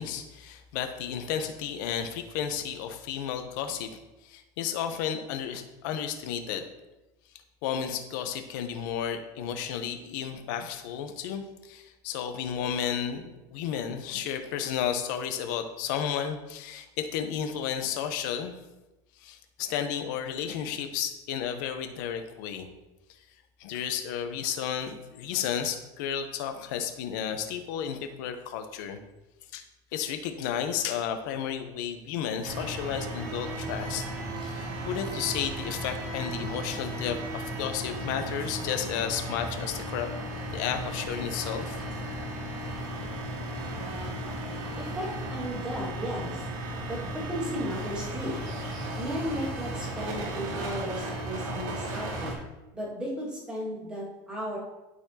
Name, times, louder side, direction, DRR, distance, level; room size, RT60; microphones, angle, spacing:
voice 1, 0.0-3.9 4.2-6.7 7.6-18.5 19.2-22.7 23.6-29.0 29.5-29.6 29.9-34.1 34.4-40.1 40.5-42.0, left 8 dB, 70° left, 7 dB, 0.8 m, -32 dB
sound 1, 32.4-52.4, right 1 dB, 85° right, 2.2 m, -35 dB
voice 2, 44.2-46.5 46.9-48.4 49.0-52.3 52.7-54.6, equal, 10° right, -7 dB, 2.0 m, -35 dB
12.0 x 4.1 x 2.9 m, 1.0 s
cardioid pair, 180°, 11 cm